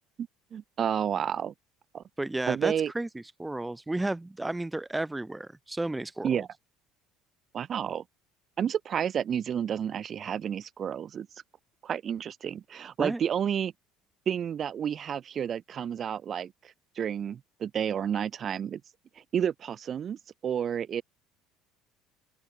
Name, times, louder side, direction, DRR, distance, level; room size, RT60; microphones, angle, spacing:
voice 1, 0.5-1.5 1.9-2.0 2.5-2.9 6.2-6.5 7.5-8.0 8.6-11.3 11.8-13.7 14.3-16.5 17.0-18.8 19.3-20.2 20.4-21.0, right 8 dB, 45° right, 2.6 m, -30 dB
voice 2, 2.2-6.5 13.0-13.2, right 2 dB, 10° right, 5.7 m, -33 dB
open air
hypercardioid pair, 65°, 0 cm